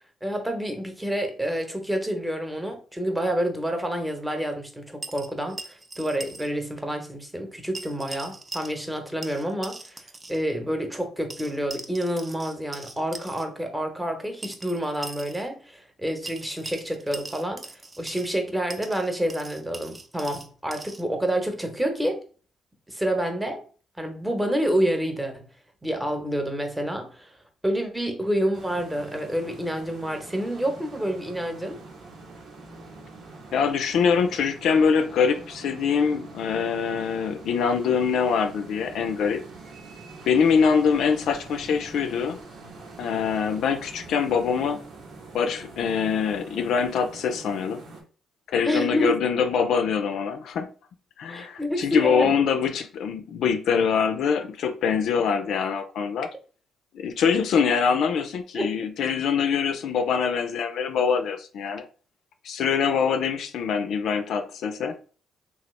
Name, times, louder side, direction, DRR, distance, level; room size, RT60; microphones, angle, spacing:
voice 1, 0.2-5.6 6.0-17.7 18.0-22.2 22.9-23.6 24.0-25.5 25.8-27.3 27.6-31.8 48.6-49.1 51.3-52.3 58.5-58.7, equal, 10° right, 0.9 m, -28 dB
sound 1, 5.0-6.5 6.7-6.8 7.7-9.0 9.2-10.4 11.3-13.4 14.4-15.5 16.3-18.4 18.7-21.0, right 3 dB, 25° right, 0.6 m, -40 dB
sound 2, 28.5-48.0, right 3 dB, 70° right, 1.0 m, -45 dB
voice 2, 33.5-39.4 40.3-42.4 43.0-44.8 45.3-47.8 48.5-50.7 51.2-56.3 56.9-61.9 62.4-65.0, left 6 dB, 70° left, 0.4 m, -24 dB
2.9 x 2.4 x 3.1 m
supercardioid pair, 60°, 0 cm